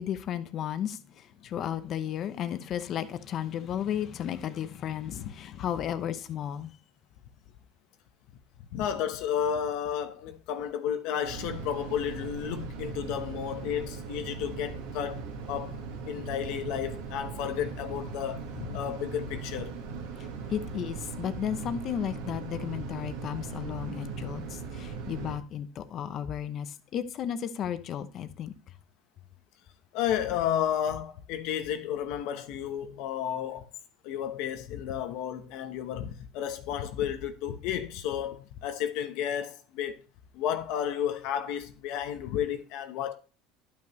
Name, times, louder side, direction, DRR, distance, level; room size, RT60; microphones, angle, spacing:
voice 1, 0.0-6.7 20.2-28.5, left 9 dB, 45° left, 0.9 m, -34 dB
voice 2, 8.7-19.8 24.2-24.3 29.9-33.7 34.0-40.0 40.3-43.1, left 9 dB, 70° left, 1.1 m, -32 dB
sound 1, 11.2-25.4, right 5 dB, 85° right, 1.7 m, -39 dB
11.5 x 5.7 x 3.2 m
supercardioid pair, 110°, 0 cm